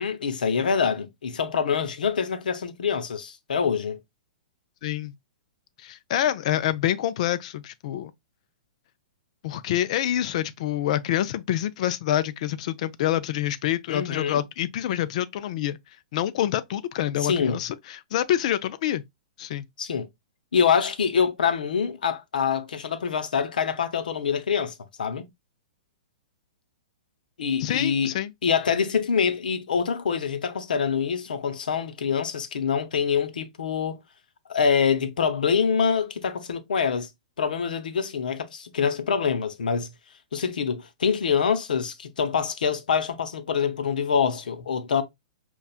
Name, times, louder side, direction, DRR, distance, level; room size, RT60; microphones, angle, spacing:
voice 1, 0.0-4.0 13.9-14.4 17.2-17.6 19.8-20.1 20.5-25.2 27.4-28.1 28.4-34.0 34.5-37.1 37.4-39.9 40.3-45.0, left 6 dB, 85° left, 0.7 m, -25 dB
voice 2, 4.8-5.1 5.8-8.1 9.4-15.8 16.1-19.0 19.4-19.7 27.6-28.3, left 12 dB, 50° left, 0.4 m, -26 dB
5.4 x 2.4 x 2.4 m
hypercardioid pair, 145°, 4 cm